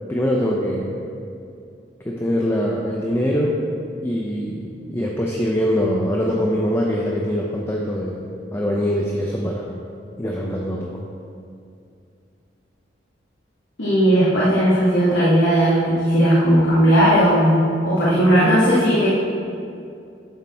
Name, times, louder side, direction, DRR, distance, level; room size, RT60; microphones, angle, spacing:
voice 1, 0.1-1.1 2.0-3.6 4.0-9.7 10.2-11.0, equal, 15° left, -1 dB, 0.6 m, -23 dB
voice 2, 13.8-17.6 17.8-19.1, equal, 85° left, -9 dB, 1.9 m, -16 dB
10.5 x 6.6 x 4.3 m, 2.5 s
head